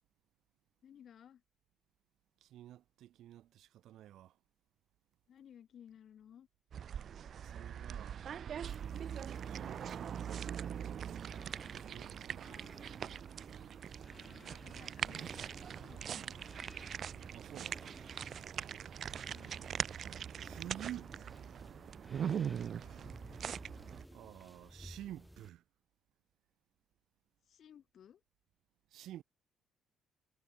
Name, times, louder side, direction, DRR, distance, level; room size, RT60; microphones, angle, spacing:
voice 1, 0.8-1.4 5.3-6.5 8.9-9.3 12.4-12.7 14.1-16.8 19.3-19.6 22.1-23.1 27.4-28.2, left 9 dB, 50° left, 3.8 m, -59 dB
voice 2, 2.4-4.4 7.4-8.2 9.4-12.9 17.3-17.9 20.4-21.1 24.1-25.6 28.9-29.2, right 13 dB, 65° right, 0.7 m, -51 dB
sound 1, 6.7-24.0, right 8 dB, 45° right, 0.4 m, -42 dB
sound 2, 8.7-25.5, equal, ahead, 1.9 m, -57 dB
cardioid pair, 140°, 0 cm